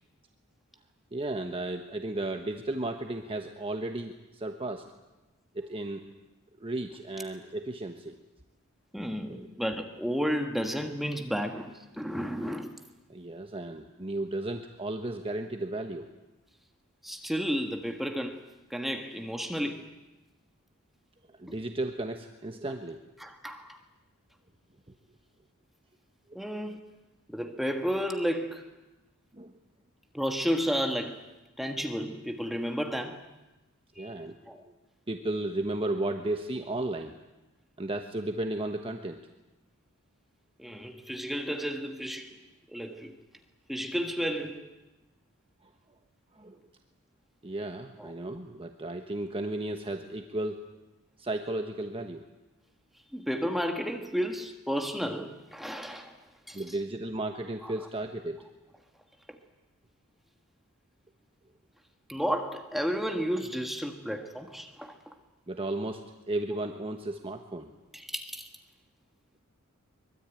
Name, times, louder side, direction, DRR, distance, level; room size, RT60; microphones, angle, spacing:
voice 1, 1.1-4.8 5.5-6.0 6.6-8.2 9.3-9.5 13.1-16.0 21.4-23.0 29.3-29.5 34.0-34.4 35.1-37.1 37.8-39.2 46.3-46.6 47.4-50.6 51.2-52.2 56.5-58.5 65.5-67.7, right 2 dB, 25° right, 4 dB, 1.3 m, -34 dB
voice 2, 8.9-12.8 17.0-18.4 18.7-19.9 21.5-21.6 23.2-23.8 26.3-26.8 27.3-28.6 30.1-31.2 31.6-33.2 34.0-34.1 34.5-34.6 40.6-42.4 42.7-43.2 43.7-44.7 48.0-48.1 53.1-56.2 56.5-56.7 57.6-57.7 62.1-65.0 67.9-68.5, equal, ahead, 5 dB, 1.5 m, -32 dB
23.5 x 23.0 x 9.1 m, 1.0 s
head